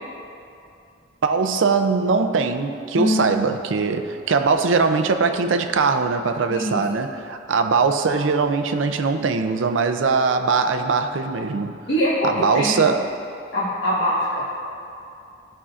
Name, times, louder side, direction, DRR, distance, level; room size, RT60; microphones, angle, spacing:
voice 1, 1.2-11.8 12.3-13.1, right 4 dB, 85° right, 7 dB, 0.5 m, -21 dB
voice 2, 2.9-3.2 6.5-6.8 11.9-12.7 13.5-14.4, equal, 65° left, -9 dB, 1.5 m, -22 dB
14.5 x 5.5 x 2.5 m, 2.5 s
head